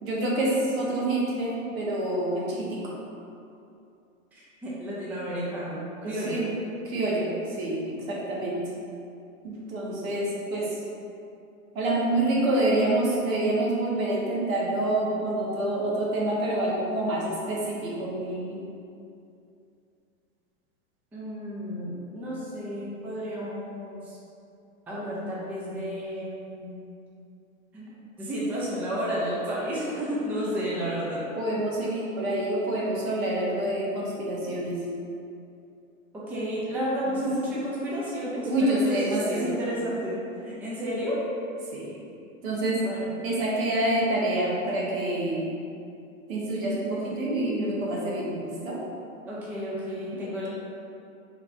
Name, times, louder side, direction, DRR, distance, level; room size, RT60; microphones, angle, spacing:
voice 1, 0.0-2.8 6.0-6.5 6.8-8.6 9.4-10.7 11.7-18.6 31.4-34.8 38.5-39.6 41.7-42.0 42.4-42.8 43.2-45.4 46.3-48.8 50.1-50.5, right 1 dB, 70° right, -5 dB, 1.4 m, -27 dB
voice 2, 4.3-6.4 21.1-24.2 24.9-26.7 27.7-27.9 28.2-31.2 36.1-41.2 42.8-43.1 49.3-50.5, equal, 5° right, -7 dB, 0.4 m, -32 dB
4.8 x 3.3 x 2.6 m, 2.6 s
hypercardioid pair, 125°, 42 cm